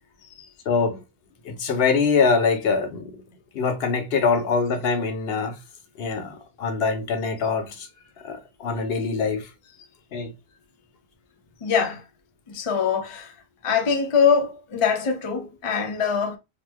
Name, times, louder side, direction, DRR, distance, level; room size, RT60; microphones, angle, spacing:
voice 1, 0.7-1.0 1.4-3.1 3.5-5.6 6.0-7.9 8.2-9.5 10.1-10.3, left 5 dB, 70° left, 0.9 m, -23 dB
voice 2, 11.6-12.0 12.5-13.3 13.6-16.4, left 6 dB, 45° left, 0.4 m, -23 dB
2.9 x 2.0 x 3.3 m
omnidirectional pair, 1.1 m